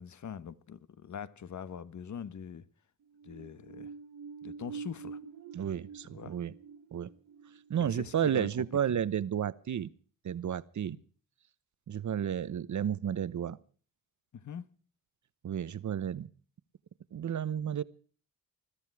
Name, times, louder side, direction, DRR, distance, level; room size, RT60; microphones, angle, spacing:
voice 1, 0.0-2.7 3.2-3.9 4.4-5.2 6.1-6.4 7.8-9.0 10.9-11.0 14.3-14.7, left 7 dB, 55° left, 1.4 m, -43 dB
sound 1, 3.0-9.4 9.7-9.8, right 6 dB, 70° right, 1.3 m, -47 dB
voice 2, 5.5-6.5 6.9-7.1 7.7-9.9 10.2-11.0 11.9-13.6 15.4-16.3 17.1-17.8, right 9 dB, 55° right, 1.0 m, -32 dB
21.0 x 14.0 x 4.8 m
cardioid pair, 100°, 35 cm